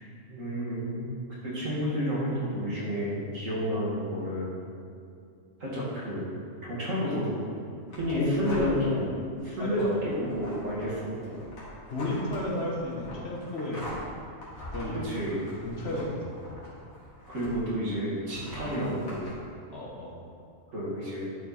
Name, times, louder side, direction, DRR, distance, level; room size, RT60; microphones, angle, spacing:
voice 1, 0.3-1.1 1.4-4.5 5.6-6.3 6.6-7.3 7.9-9.0 9.4-11.4 14.9-15.5 17.3-19.3 20.7-21.3, equal, 75° right, -7 dB, 2.6 m, -31 dB
sound 1, 7.9-9.0 9.4-17.8 18.3-19.3, equal, 85° left, 2.4 m, -44 dB
voice 2, 8.1-9.1 9.6-10.0 11.9-14.0 14.7-15.0 15.6-16.4 18.3-18.5 19.7-20.2, left 2 dB, 55° left, -3 dB, 1.4 m, -32 dB
11.0 x 4.5 x 4.3 m, 2.4 s
omnidirectional pair, 1.4 m